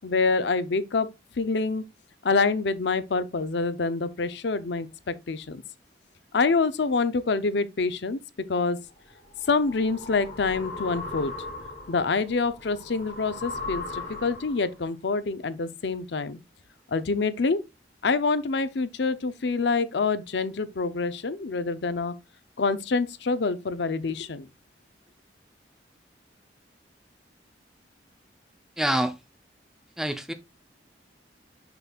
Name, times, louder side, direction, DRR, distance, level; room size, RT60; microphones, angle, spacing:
voice 1, 0.0-1.1 1.4-1.8 2.2-5.6 6.3-8.2 8.5-8.8 9.5-11.3 11.9-16.4 16.9-17.6 18.0-22.1 22.6-24.5, left 4 dB, 70° left, 0.6 m, -26 dB
sound 1, 9.0-14.8, left 3 dB, 45° left, 3.4 m, -38 dB
voice 2, 28.8-29.1 30.0-30.3, right 1 dB, ahead, 0.6 m, -26 dB
6.7 x 6.0 x 2.4 m
head